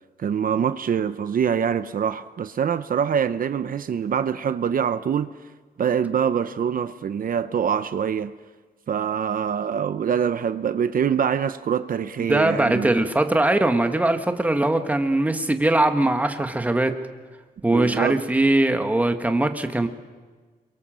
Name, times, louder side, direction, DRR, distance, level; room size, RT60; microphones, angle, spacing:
voice 1, 0.2-5.3 5.8-8.3 8.9-12.9 17.7-18.2, right 8 dB, 60° right, 0.8 m, -24 dB
voice 2, 12.3-17.0 17.6-19.9, right 2 dB, 10° right, 1.5 m, -21 dB
29.5 x 23.5 x 7.6 m
wide cardioid pair, 150°, 16 cm